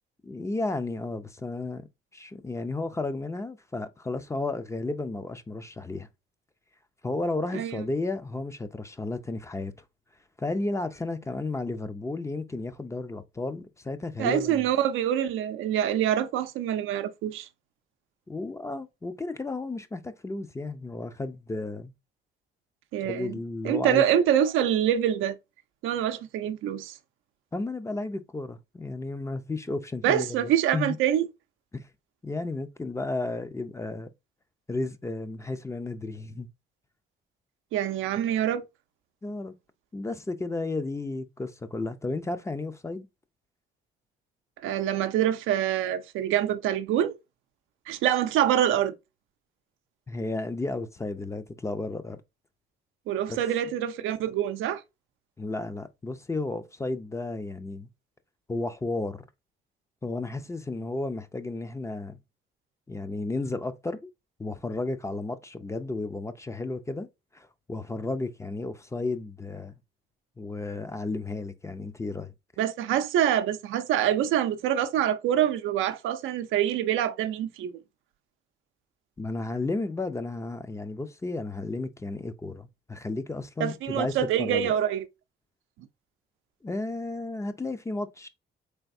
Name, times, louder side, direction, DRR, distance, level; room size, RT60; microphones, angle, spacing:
voice 1, 0.2-1.9 2.1-6.1 7.0-9.7 10.4-14.6 18.3-21.9 23.0-24.0 27.5-31.0 31.7-31.9 32.2-34.1 34.7-36.5 39.2-39.6 39.9-43.1 50.1-52.2 53.3-53.4 55.4-57.9 58.5-59.2 60.0-62.2 62.9-64.1 64.4-67.1 67.3-69.7 70.4-72.3 79.2-84.1 84.4-84.7 86.6-88.3, left 2 dB, 15° left, 0.4 m, -33 dB
voice 2, 14.2-17.5 22.9-23.3 23.6-25.4 25.8-26.9 30.0-31.3 37.7-38.6 44.6-47.2 47.9-48.9 53.1-54.8 72.6-77.7 83.6-85.0, right 10 dB, 85° right, 0.5 m, -25 dB
3.9 x 3.4 x 2.5 m
cardioid pair, 90°, 20 cm